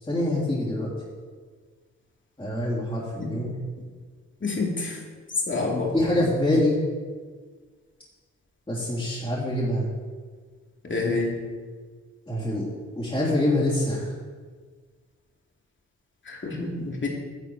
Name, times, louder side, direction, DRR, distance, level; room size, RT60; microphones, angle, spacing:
voice 1, 0.0-0.9 2.4-3.5 5.9-6.8 8.7-9.9 12.3-12.7 13.0-14.1, left 1 dB, 20° left, -7 dB, 3.4 m, -25 dB
voice 2, 4.4-5.0 5.5-5.9 10.8-11.4 16.2-17.1, left 3 dB, 40° left, -1 dB, 2.6 m, -28 dB
10.5 x 6.9 x 4.8 m, 1.5 s
cardioid pair, 65°, 30 cm